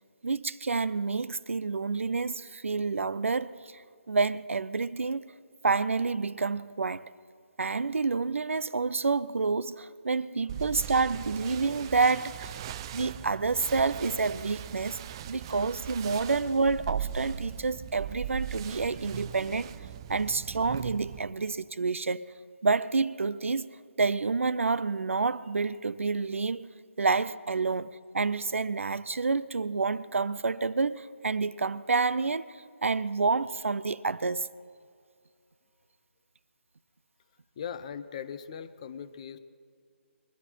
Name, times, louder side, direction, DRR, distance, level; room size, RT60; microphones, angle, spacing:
voice 1, 0.2-3.5 4.1-5.3 5.6-7.1 7.6-12.6 12.9-15.0 15.3-19.7 20.1-22.2 22.6-23.7 24.0-26.7 27.0-34.5, right 4 dB, 80° right, 0.5 m, -28 dB
sound 1, 10.5-21.2, right 9 dB, 20° right, 0.3 m, -39 dB
voice 2, 37.6-39.4, left 7 dB, 30° left, 0.6 m, -39 dB
21.5 x 11.5 x 4.4 m
figure-of-eight pair, 155°, 7 cm